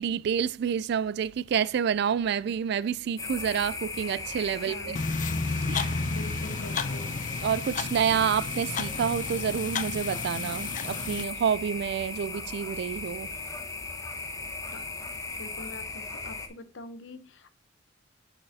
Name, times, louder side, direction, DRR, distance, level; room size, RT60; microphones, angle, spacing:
voice 1, 0.0-5.0 5.7-6.0 7.4-13.4, right 7 dB, 60° right, 0.3 m, -28 dB
sound 1, 3.2-16.5, left 3 dB, 15° left, 0.9 m, -37 dB
voice 2, 4.7-5.0 6.1-7.1 14.7-14.9 15.4-17.5, left 2 dB, 75° left, 0.8 m, -44 dB
sound 2, 4.9-11.2, left 4 dB, 45° left, 0.5 m, -32 dB
7.2 x 5.5 x 2.7 m
head